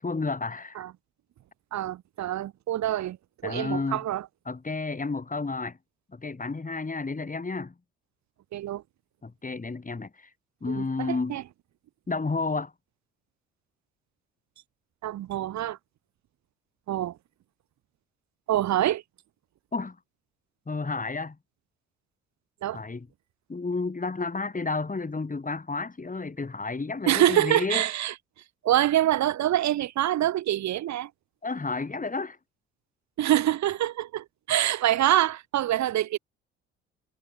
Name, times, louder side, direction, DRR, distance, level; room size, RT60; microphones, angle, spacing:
voice 1, 0.0-0.8 3.4-4.0 4.5-5.8 6.1-7.7 9.2-10.3 10.6-11.4 12.1-12.7 19.7-20.0 20.7-21.4 22.7-23.1 23.5-27.8 31.4-32.4, left 3 dB, 25° left, 8.0 m, -31 dB
voice 2, 1.7-3.2 3.4-4.3 8.5-8.8 10.7-11.4 15.0-15.8 16.9-17.2 18.5-19.0 22.6-22.8 27.1-28.1 28.6-31.1 33.2-36.2, right 13 dB, 60° right, 2.6 m, -25 dB
hypercardioid pair, 50°, 32 cm